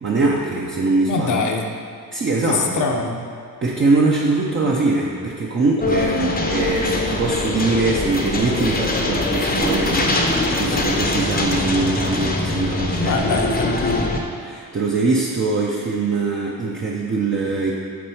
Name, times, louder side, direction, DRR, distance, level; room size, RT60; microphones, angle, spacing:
voice 1, 0.0-1.3 2.1-2.8 3.6-13.2 14.4-17.7, right 3 dB, 30° right, -3 dB, 0.7 m, -22 dB
voice 2, 1.1-1.7 2.5-3.2 13.0-14.1, left 3 dB, 55° left, 2 dB, 0.8 m, -23 dB
sound 1, 5.8-14.2, left 2 dB, 25° left, 0.8 m, -22 dB
6.0 x 4.2 x 4.9 m, 2.3 s
cardioid pair, 85°, 36 cm